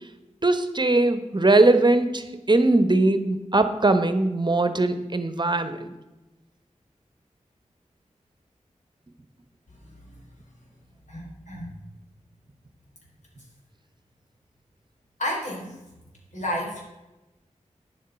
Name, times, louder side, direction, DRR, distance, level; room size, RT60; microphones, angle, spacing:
voice 1, 0.4-5.9, right 2 dB, 35° right, 10 dB, 1.1 m, -20 dB
voice 2, 11.1-11.7 15.2-15.8 16.3-16.8, left 1 dB, 70° left, -2 dB, 3.8 m, -31 dB
10.5 x 7.3 x 5.8 m, 1.0 s
cardioid pair, 50°, 13 cm